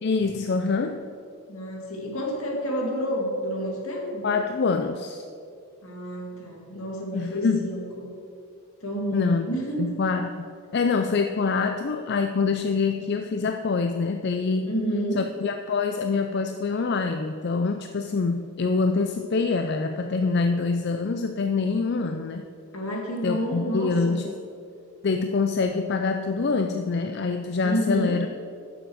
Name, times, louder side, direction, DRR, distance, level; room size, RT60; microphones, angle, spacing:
voice 1, 0.0-1.0 4.2-5.3 7.1-7.7 9.1-9.5 9.8-14.8 15.1-22.5 23.2-24.3 25.0-28.3, left 4 dB, 50° left, 7 dB, 0.4 m, -25 dB
voice 2, 1.5-4.2 5.8-8.1 8.8-10.0 14.7-15.2 22.7-24.2 27.6-28.1, equal, 70° left, 0 dB, 2.3 m, -29 dB
10.5 x 6.9 x 6.3 m, 2.4 s
head